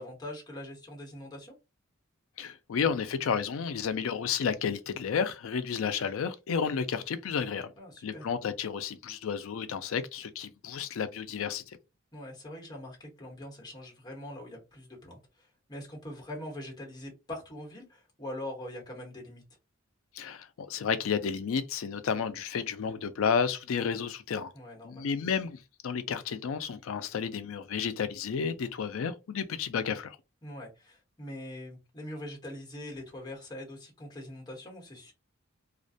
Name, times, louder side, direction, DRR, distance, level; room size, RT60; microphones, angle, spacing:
voice 1, 0.0-1.5 7.8-8.3 12.1-19.4 24.5-25.1 30.4-35.1, left 1 dB, 20° left, 1.0 m, -43 dB
voice 2, 2.4-7.7 8.0-11.6 20.1-24.5 24.8-25.6 25.8-30.2, left 6 dB, 75° left, 0.4 m, -31 dB
2.4 x 2.1 x 2.6 m
head